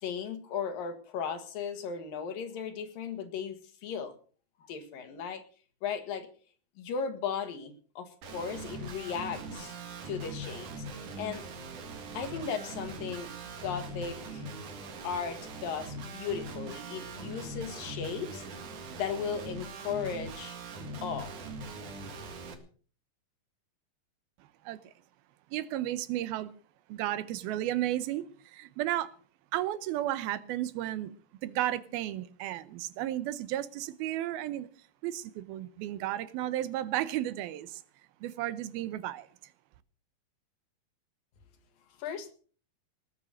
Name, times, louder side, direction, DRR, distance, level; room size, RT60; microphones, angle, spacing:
voice 1, 0.0-4.2 4.7-5.4 5.8-6.3 6.8-9.8 10.1-11.4 12.1-14.4 15.0-18.4 18.9-20.6 21.0-21.3 42.0-42.3, left 6 dB, 70° left, 3.4 m, -36 dB
Guitar, 8.2-22.5, right 2 dB, 60° right, 3.4 m, -41 dB
voice 2, 25.5-26.5 26.9-29.1 29.5-31.1 31.4-34.7 35.0-37.8 38.2-39.3, right 13 dB, 85° right, 2.8 m, -33 dB
19.5 x 8.9 x 6.5 m
omnidirectional pair, 4.2 m